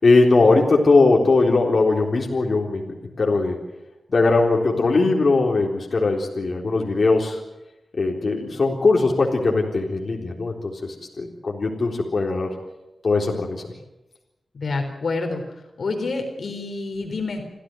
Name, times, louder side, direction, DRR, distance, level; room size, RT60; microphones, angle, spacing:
voice 1, 0.0-3.6 4.1-7.4 7.9-12.5 13.0-13.6, left 3 dB, 55° left, 0 dB, 3.8 m, -20 dB
voice 2, 14.5-15.4 15.8-17.4, left 3 dB, 70° left, 5 dB, 3.9 m, -27 dB
27.0 x 15.0 x 9.1 m, 0.96 s
wide cardioid pair, 95°, 0 cm